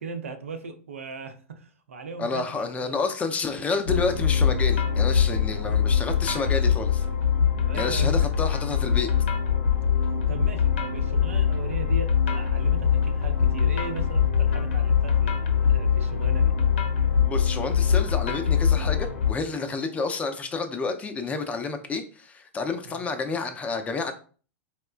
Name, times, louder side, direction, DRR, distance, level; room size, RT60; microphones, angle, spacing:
voice 1, 0.0-3.0 5.1-5.8 7.6-8.3 10.3-16.5 22.9-23.0, right 4 dB, 75° right, 8 dB, 0.5 m, -38 dB
voice 2, 2.2-7.0 7.7-9.1 17.2-24.1, left 4 dB, 20° left, 7 dB, 0.4 m, -29 dB
sound 1, 3.9-19.3, left 7 dB, 60° left, 0.7 m, -23 dB
4.2 x 2.1 x 2.3 m, 0.39 s
figure-of-eight pair, 95°, 7 cm